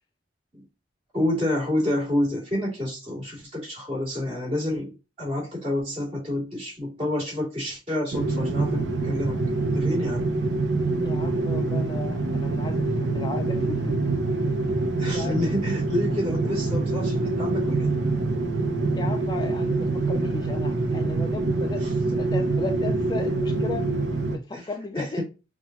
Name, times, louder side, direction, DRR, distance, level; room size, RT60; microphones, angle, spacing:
voice 1, 1.1-9.4 9.7-10.4 13.6-13.7 15.0-17.9 21.8-22.0 24.5-24.7 25.0-25.2, left 1 dB, 30° right, 2.5 m, -29 dB
sound 1, 8.1-24.4, right 3 dB, 90° right, 0.8 m, -25 dB
voice 2, 11.0-14.0 15.0-15.5 19.0-23.9 24.3-25.2, left 3 dB, 25° left, 0.3 m, -36 dB
5.8 x 2.4 x 2.9 m
head